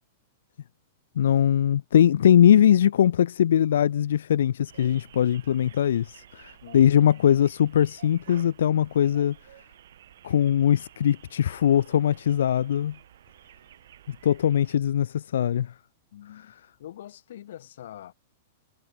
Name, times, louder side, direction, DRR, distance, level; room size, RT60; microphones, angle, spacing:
voice 1, 1.2-9.4 10.2-13.0 14.1-15.7, left 10 dB, 85° left, 0.5 m, -21 dB
sound 1, 4.7-14.7, right 11 dB, 70° right, 2.2 m, -52 dB
voice 2, 6.6-7.4 16.1-16.5 16.8-18.1, left 12 dB, 65° left, 1.8 m, -44 dB
supercardioid pair, 165°, 0 cm